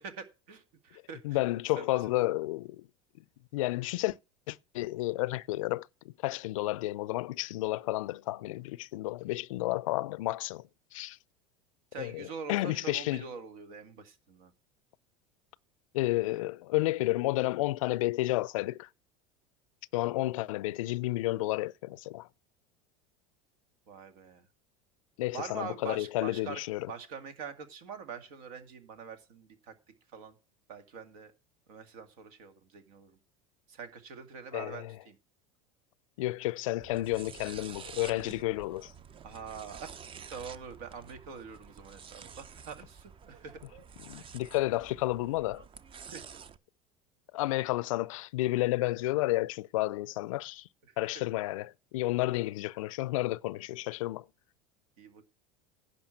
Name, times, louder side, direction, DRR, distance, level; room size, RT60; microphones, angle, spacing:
voice 1, 0.0-1.4 1.8-1.9 11.9-14.5 23.9-24.5 25.3-26.6 26.9-29.7 30.1-30.4 30.7-31.3 31.7-33.2 33.7-35.2 39.2-39.9 40.3-43.6 44.2-44.3 46.1-46.2 52.3-52.5 55.0-55.3, right 6 dB, 75° right, 1.9 m, -44 dB
voice 2, 1.2-2.9 3.2-3.3 3.5-4.2 4.5-11.2 12.0-13.2 15.9-18.9 19.9-22.3 25.2-26.9 34.5-35.0 36.2-38.9 44.1-45.6 47.3-50.7 51.0-54.2, left 18 dB, 75° left, 0.4 m, -31 dB
sound 1, 36.8-46.6, right 6 dB, 30° right, 0.7 m, -49 dB
10.5 x 5.2 x 7.6 m
hypercardioid pair, 85°, 17 cm